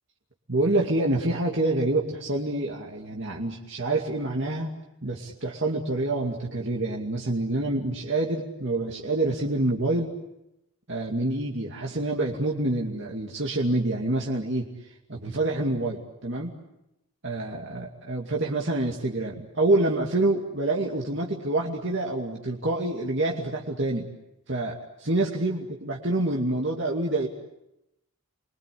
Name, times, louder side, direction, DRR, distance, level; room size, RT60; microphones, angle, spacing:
voice 1, 0.5-4.7 5.0-10.1 10.9-16.5 17.2-24.1 24.5-27.3, right 2 dB, 55° right, -2 dB, 2.5 m, -27 dB
29.5 x 23.5 x 8.5 m, 0.89 s
head